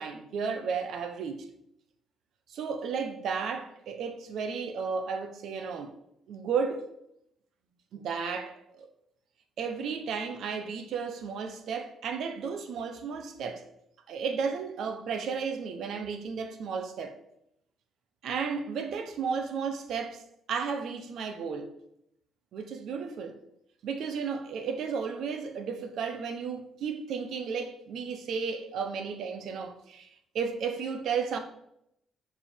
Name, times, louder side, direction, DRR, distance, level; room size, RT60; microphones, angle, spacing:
voice 1, 0.0-1.5 2.5-5.9 6.3-6.9 7.9-8.9 9.6-13.7 14.1-17.2 18.2-20.2 20.5-21.7 22.5-23.4 23.8-30.1 30.3-31.4, right 5 dB, 75° right, 1.1 m, -33 dB
7.2 x 5.3 x 6.8 m
cardioid pair, 90°, 0 cm